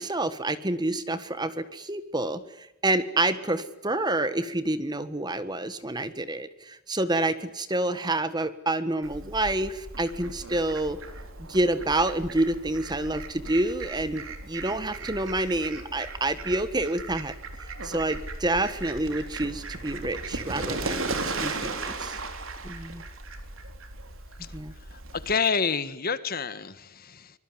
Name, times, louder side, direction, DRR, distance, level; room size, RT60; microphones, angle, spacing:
voice 1, 0.0-2.4 2.8-11.0 11.5-17.3 17.8-22.2 22.6-23.0 24.5-24.7, right 2 dB, 20° right, 12 dB, 1.6 m, -28 dB
Fowl, 9.0-25.3, right 3 dB, 70° right, 3.9 m, -37 dB
voice 2, 25.2-27.3, left 5 dB, 45° left, 13 dB, 1.5 m, -28 dB
25.0 x 22.0 x 9.7 m, 0.86 s
head